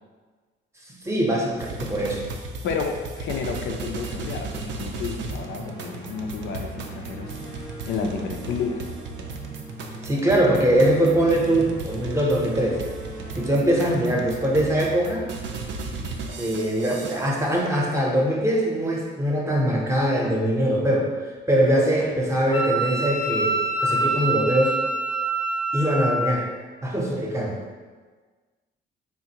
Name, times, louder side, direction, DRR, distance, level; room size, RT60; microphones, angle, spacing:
voice 1, 1.0-2.2 10.0-12.8 13.3-15.3 16.4-21.1 21.5-24.8 25.7-26.4 26.8-27.6, right 1 dB, 15° right, -2 dB, 0.7 m, -22 dB
sound 1, 1.6-17.5, right 3 dB, 70° right, 0.4 m, -36 dB
voice 2, 2.6-7.6 7.9-8.8, left 5 dB, 75° left, 3 dB, 0.4 m, -31 dB
sound 2, 4.0-18.2, right 2 dB, 85° right, 0.8 m, -42 dB
Wind instrument woodwind instrument, 22.5-26.3, right 2 dB, 25° left, 0.5 m, -25 dB
3.7 x 2.5 x 2.8 m, 1.4 s
cardioid pair, 90°, 20 cm